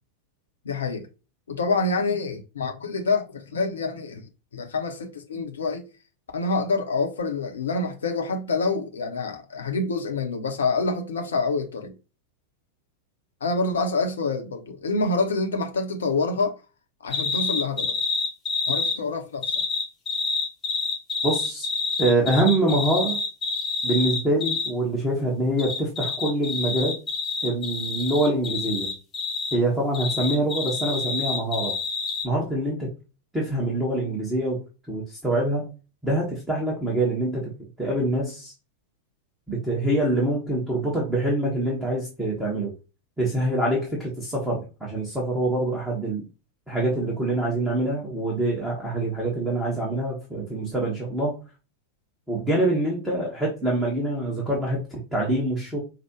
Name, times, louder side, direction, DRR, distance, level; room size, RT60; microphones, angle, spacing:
voice 1, 0.6-1.1 1.5-5.9 6.3-12.0 13.4-16.5 17.0-18.0 18.7-19.6, left 3 dB, 65° left, 0.9 m, -27 dB
sound 1, 17.1-19.0 19.4-24.7 25.6-29.6 29.9-32.3, left 4 dB, 20° left, 1.1 m, -28 dB
voice 2, 21.2-21.7 22.0-23.2 23.8-27.0 27.4-28.9 29.5-31.8 32.2-32.9 33.3-35.7 36.0-37.5 37.8-38.5 39.5-42.7 43.2-46.3 46.7-51.4 52.3-55.8, right 1 dB, 5° right, 1.5 m, -25 dB
5.8 x 2.5 x 3.0 m
figure-of-eight pair, 90°, 0 cm